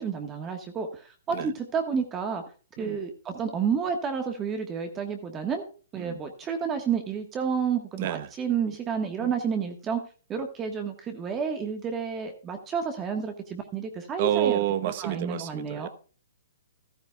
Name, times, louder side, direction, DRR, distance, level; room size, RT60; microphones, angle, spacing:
voice 1, 0.0-2.4 2.8-5.6 5.9-10.0 10.3-14.6 15.0-15.9, right 6 dB, 15° right, 1.4 m, -30 dB
voice 2, 8.0-8.3 9.2-9.3 14.2-15.9, right 12 dB, 40° right, 0.9 m, -29 dB
14.0 x 12.5 x 2.3 m
hypercardioid pair, 160°, 0 cm